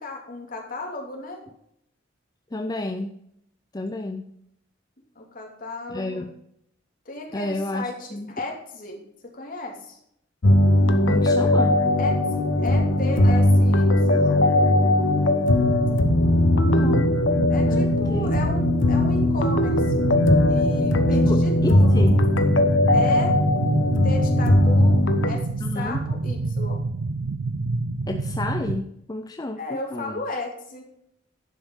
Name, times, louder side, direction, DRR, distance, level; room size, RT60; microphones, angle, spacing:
voice 1, 0.0-1.4 5.2-6.3 7.1-10.0 12.0-14.4 17.5-20.1 20.5-22.1 22.9-23.4 24.0-26.8 29.6-30.8, left 2 dB, 45° left, 1 dB, 2.7 m, -34 dB
voice 2, 2.5-3.1 3.7-4.3 5.9-6.3 7.3-8.3 11.1-11.7 16.6-17.1 17.7-18.3 21.3-22.2 25.6-26.0 28.1-30.2, left 2 dB, 20° left, 5 dB, 0.6 m, -31 dB
sound 1, 10.4-25.3, left 1 dB, 70° left, 1.1 m, -19 dB
sound 2, 15.5-28.8, right 3 dB, 80° right, 0.6 m, -27 dB
11.5 x 5.8 x 5.4 m, 0.73 s
head